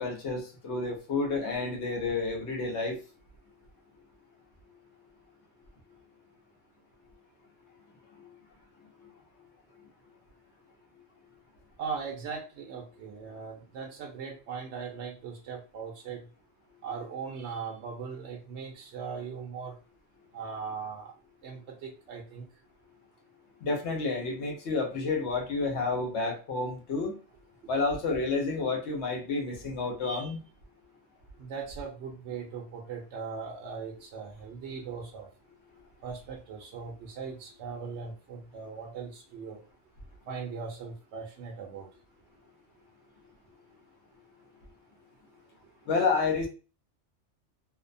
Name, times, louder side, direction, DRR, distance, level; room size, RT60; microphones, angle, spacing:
voice 1, 0.0-3.0 23.6-27.1 27.7-30.4 45.9-46.5, left 3 dB, 70° left, 2 dB, 1.0 m, -30 dB
voice 2, 11.8-16.2 16.8-19.8 20.3-21.1 21.4-22.4 30.0-30.3 31.4-35.3 36.0-39.6 40.3-41.9, right 5 dB, 70° right, 0 dB, 0.8 m, -39 dB
2.6 x 2.1 x 2.5 m, 0.33 s
omnidirectional pair, 1.3 m